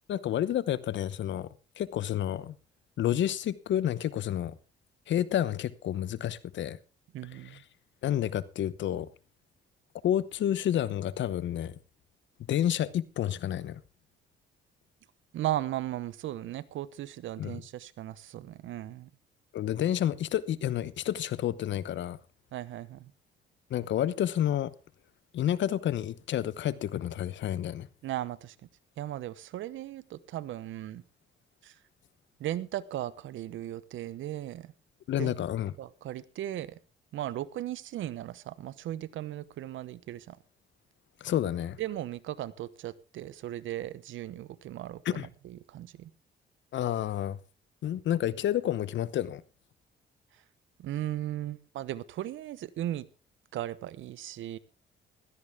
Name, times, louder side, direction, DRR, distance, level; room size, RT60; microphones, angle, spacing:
voice 1, 0.1-1.5 1.8-2.5 3.0-4.6 5.1-6.8 8.0-9.1 10.0-11.7 12.5-13.8 17.4-17.6 19.5-22.2 23.7-24.7 25.3-27.9 35.1-35.7 41.2-41.8 45.0-45.3 46.7-47.4 47.8-49.4, left 11 dB, 70° left, 0.9 m, -29 dB
voice 2, 7.1-7.6 15.3-19.1 22.5-23.1 28.0-28.5 29.0-31.0 31.6-31.8 32.4-34.7 35.2-35.4 35.8-36.8 37.1-40.4 41.8-46.1 50.3-50.4 50.8-53.1 53.5-54.6, right 13 dB, 80° right, 1.0 m, -37 dB
16.5 x 13.5 x 3.5 m
cardioid pair, 90°, 20 cm